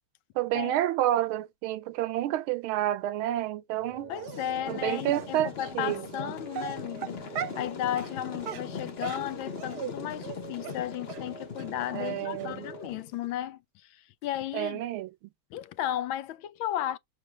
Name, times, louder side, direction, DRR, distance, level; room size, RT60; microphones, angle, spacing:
voice 1, 0.3-4.1 4.7-6.3 11.9-12.7 14.5-15.1, right 13 dB, 85° right, 1.5 m, -29 dB
sound 1, 3.8-12.9, right 4 dB, 30° right, 0.8 m, -46 dB
voice 2, 4.1-7.3 7.5-14.8 15.5-17.0, left 12 dB, 75° left, 1.4 m, -34 dB
Dog, 4.1-4.5 5.1-5.2 6.0-6.2 6.5-7.7 8.0-8.1 8.4-9.9 10.2-10.4 10.6-10.8 11.1-11.2 11.6-11.7 12.0-12.1 12.4-12.5, right 9 dB, 60° right, 1.2 m, -37 dB
sound 2, 4.2-13.3, left 7 dB, 50° left, 0.8 m, -41 dB
6.7 x 3.2 x 5.9 m
omnidirectional pair, 2.3 m